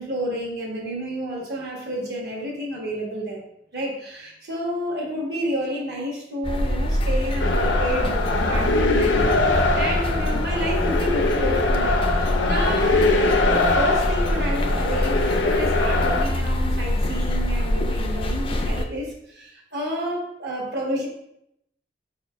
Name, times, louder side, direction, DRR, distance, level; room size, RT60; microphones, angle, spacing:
voice 1, 0.0-3.4 3.7-21.1, equal, 60° right, -2 dB, 1.2 m, -30 dB
sound 1, 6.4-18.8, left 1 dB, 30° left, 0.3 m, -25 dB
sound 2, 7.4-16.2, left 3 dB, 90° left, 0.5 m, -23 dB
sound 3, 9.1-12.3, right 1 dB, 30° right, 0.5 m, -37 dB
4.9 x 4.2 x 2.3 m, 0.77 s
head